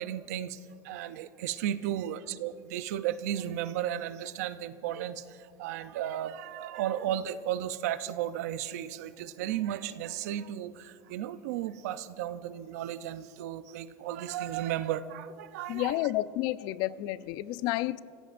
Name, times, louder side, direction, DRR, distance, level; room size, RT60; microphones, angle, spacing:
voice 1, 0.0-16.0, right 11 dB, 85° right, 13 dB, 0.6 m, -34 dB
voice 2, 15.7-18.0, left 16 dB, 55° left, 17 dB, 0.4 m, -30 dB
28.0 x 16.5 x 2.6 m, 2.6 s
supercardioid pair, 140°, 8 cm